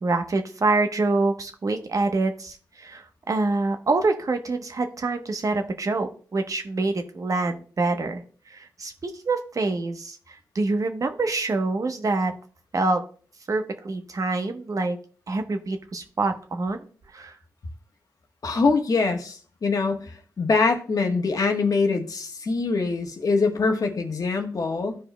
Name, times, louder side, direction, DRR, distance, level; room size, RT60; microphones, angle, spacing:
voice 1, 0.0-8.2 8.5-12.3 12.7-13.0 13.5-15.0 15.3-16.8 17.1-17.3, right 3 dB, 50° right, 6 dB, 1.0 m, -26 dB
voice 2, 18.4-25.0, left 4 dB, 55° left, 3 dB, 1.2 m, -24 dB
13.5 x 4.8 x 2.2 m, 0.43 s
cardioid pair, 55°, 7 cm